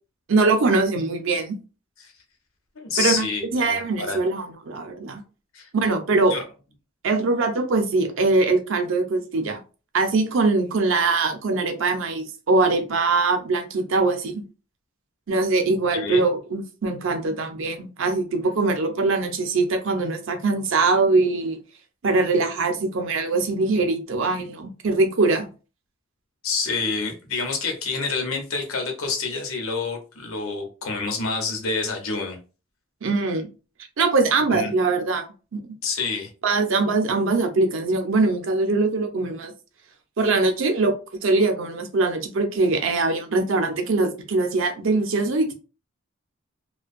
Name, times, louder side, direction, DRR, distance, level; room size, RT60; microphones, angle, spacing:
voice 1, 0.3-1.6 3.0-3.3 3.5-5.2 5.7-6.3 7.0-9.6 9.9-14.4 15.3-21.6 22.0-25.5 33.0-33.5 34.0-35.3 35.5-35.7 36.4-39.5 40.2-40.9 41.2-45.5, right 3 dB, 65° right, 0.5 m, -22 dB
voice 2, 2.8-4.2 5.5-5.7 6.3-6.4 15.9-16.2 26.4-32.4 34.5-34.7 35.8-36.3, left 4 dB, 90° left, 0.7 m, -28 dB
2.5 x 2.2 x 2.4 m
head